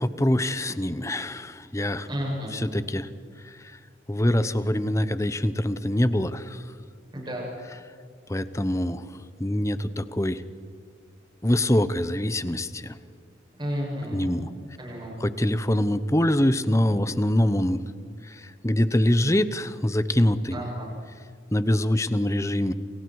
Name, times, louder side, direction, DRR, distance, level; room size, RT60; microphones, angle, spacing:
voice 1, 0.0-2.1 2.6-3.1 4.1-6.6 8.3-9.0 9.4-10.4 11.4-13.0 14.1-14.4 15.2-17.8 18.3-18.4 18.6-20.6 21.5-22.7, left 1 dB, 15° left, 13 dB, 0.9 m, -24 dB
voice 2, 2.1-2.6 7.1-7.5 13.6-14.4 14.8-15.2 20.5-20.9, equal, 25° right, -3 dB, 7.7 m, -32 dB
29.0 x 28.0 x 4.8 m, 2.2 s
head